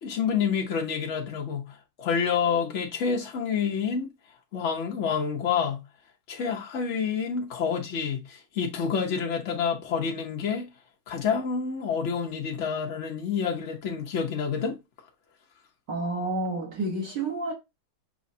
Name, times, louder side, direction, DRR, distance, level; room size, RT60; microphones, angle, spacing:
voice 1, 0.0-4.1 4.5-5.8 6.3-10.7 11.1-14.8, left 6 dB, 60° left, 0.7 m, -28 dB
voice 2, 15.9-17.5, right 2 dB, 60° right, 1.6 m, -29 dB
6.2 x 3.1 x 2.7 m
omnidirectional pair, 2.3 m